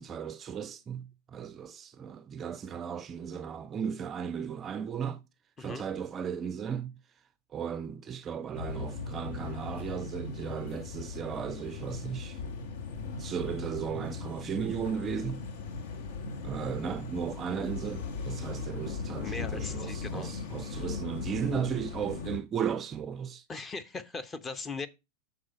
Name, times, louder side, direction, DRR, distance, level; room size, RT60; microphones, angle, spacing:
voice 1, 0.0-5.2 5.6-6.9 7.5-12.4 13.2-15.5 16.4-23.4, right 7 dB, 25° right, 0.4 m, -35 dB
sound 1, 8.6-22.4, left 5 dB, 55° left, 0.9 m, -38 dB
voice 2, 19.2-20.3 23.5-24.9, left 4 dB, 20° left, 0.7 m, -39 dB
6.4 x 3.9 x 5.5 m
figure-of-eight pair, 90°, 0 cm